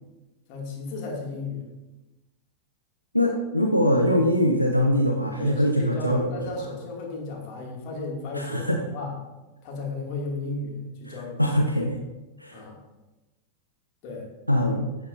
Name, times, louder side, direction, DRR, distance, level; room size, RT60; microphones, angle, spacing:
voice 1, 0.5-1.7 5.3-9.1 9.6-11.4 12.5-12.8 14.0-14.3, left 3 dB, 45° left, -1 dB, 2.3 m, -34 dB
voice 2, 3.1-6.3 8.3-8.8 11.1-12.0 12.4-12.6 14.5-14.9, equal, 90° left, 2 dB, 0.6 m, -23 dB
11.0 x 7.1 x 2.6 m, 1.1 s
figure-of-eight pair, 90°, 0 cm